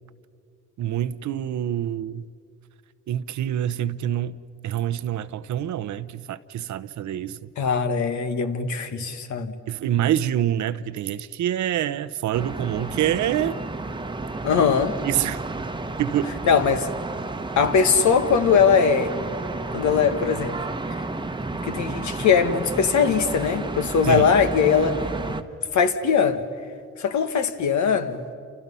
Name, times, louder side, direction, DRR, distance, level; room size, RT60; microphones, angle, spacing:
voice 1, 0.8-2.3 3.1-4.4 4.6-7.5 9.7-13.6 15.0-15.4 16.0-16.3 24.1-24.3, right 11 dB, 70° right, 0.9 m, -26 dB
voice 2, 7.6-9.5 14.4-14.9 16.4-16.9 17.6-19.1 19.7-20.6 21.6-25.0 25.7-26.5 27.0-28.2, left 6 dB, 70° left, 1.7 m, -20 dB
sound 1, 12.3-25.4, right 2 dB, 15° right, 1.1 m, -31 dB
29.5 x 28.5 x 5.6 m
cardioid pair, 90°, 30 cm